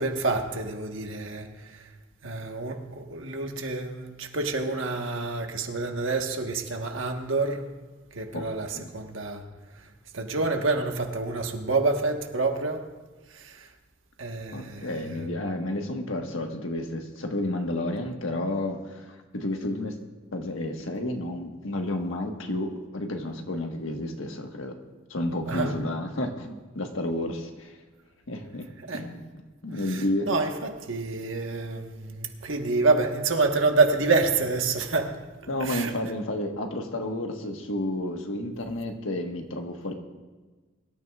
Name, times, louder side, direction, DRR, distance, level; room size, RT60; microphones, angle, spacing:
voice 1, 0.0-1.9 2.2-7.7 8.1-9.5 9.7-9.9 10.1-12.9 13.3-13.7 14.2-15.2 25.5-25.7 28.9-29.1 29.9-35.2 35.6-35.9, right 3 dB, 70° right, 1.4 m, -28 dB
voice 2, 14.5-20.0 20.3-24.8 25.1-27.8 28.3-30.3 35.5-39.9, left 1 dB, 80° left, 1.5 m, -31 dB
23.5 x 13.0 x 2.4 m
head